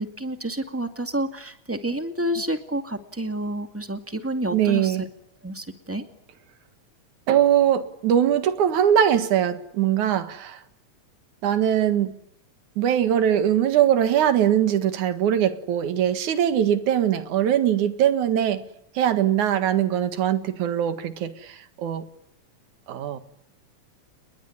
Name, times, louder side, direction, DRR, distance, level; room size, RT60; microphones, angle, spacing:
voice 1, 0.0-5.1 5.4-6.0, right 1 dB, 5° right, 1.8 m, -29 dB
voice 2, 4.5-5.0 7.3-10.6 11.4-12.1 12.8-18.7 18.9-22.1 22.9-23.2, right 10 dB, 85° right, 3.1 m, -21 dB
29.0 x 21.5 x 9.6 m
omnidirectional pair, 3.3 m